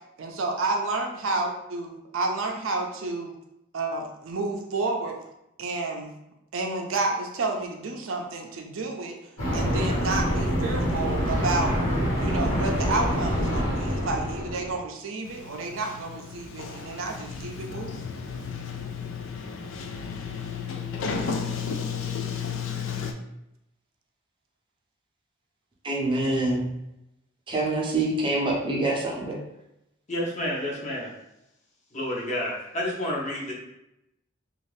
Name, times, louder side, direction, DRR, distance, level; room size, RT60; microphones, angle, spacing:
voice 1, 0.2-3.3 3.7-5.2 5.6-6.1 6.5-9.2 9.5-11.8 12.2-18.0, right 3 dB, 80° right, 2 dB, 0.5 m, -30 dB
sound 1, 9.4-14.8, equal, 90° left, 1.1 m, -26 dB
Sliding door, 15.2-23.1, left 6 dB, 75° left, 0.3 m, -33 dB
voice 2, 25.8-26.7 27.5-29.4, right 2 dB, 25° right, -3 dB, 0.6 m, -25 dB
voice 3, 30.1-31.1 31.9-33.5, left 1 dB, 35° left, -4 dB, 0.7 m, -30 dB
2.6 x 2.4 x 3.2 m, 0.86 s
head